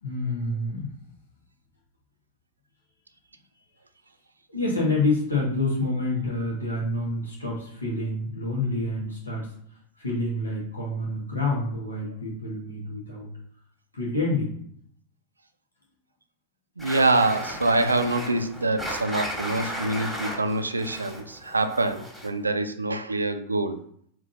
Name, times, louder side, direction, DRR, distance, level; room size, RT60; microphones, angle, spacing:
voice 1, 0.0-0.9 4.5-13.3 13.9-14.6, left 2 dB, 80° left, -4 dB, 1.3 m, -28 dB
sound 1, 16.8-22.5, equal, 10° left, 1.6 m, -35 dB
voice 2, 16.8-23.8, right 2 dB, 80° right, 9 dB, 0.4 m, -25 dB
3.7 x 2.7 x 3.9 m, 0.65 s
figure-of-eight pair, 90°, 0 cm